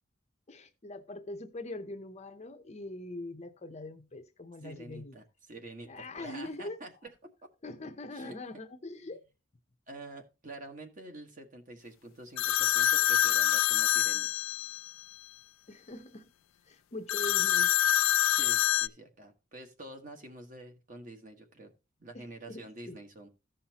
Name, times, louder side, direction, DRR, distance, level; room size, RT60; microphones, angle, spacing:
voice 1, 0.5-5.1 5.9-6.8 7.6-9.2 15.7-16.3 16.7-17.7 22.1-23.0, left 2 dB, 35° left, 0.7 m, -42 dB
voice 2, 4.6-6.9 8.1-8.4 9.9-14.3 17.2-17.3 18.3-21.7 22.0-23.3, right 2 dB, 40° right, 1.5 m, -47 dB
phone ringtone bell, 12.4-14.9 17.1-18.9, left 12 dB, 80° left, 0.4 m, -26 dB
15.0 x 5.6 x 2.9 m
head